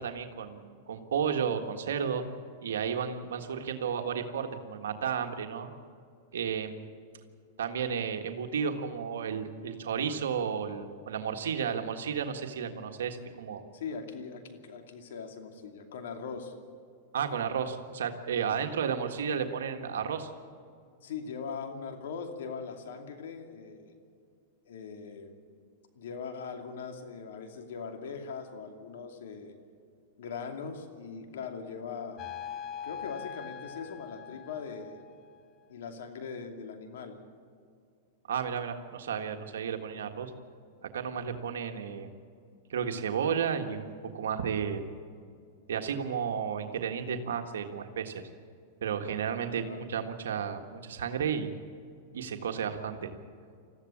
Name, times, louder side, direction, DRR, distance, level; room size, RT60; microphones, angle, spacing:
voice 1, 0.0-2.2 2.6-5.7 6.3-6.9 7.6-13.6 17.1-20.3 38.3-40.3 40.9-42.2 42.7-44.8 45.7-48.1 48.8-51.5 52.1-53.1, right 7 dB, 90° right, 5 dB, 1.6 m, -33 dB
voice 2, 13.7-16.5 21.0-23.9 24.6-25.3 25.9-29.5 30.2-32.3 32.8-35.0 35.7-37.2 49.6-49.8, left 5 dB, 75° left, 5 dB, 2.7 m, -40 dB
sound 1, 32.2-35.4, left 8 dB, 35° left, 0.8 m, -42 dB
21.5 x 15.0 x 8.6 m, 2.3 s
supercardioid pair, 135°, 0 cm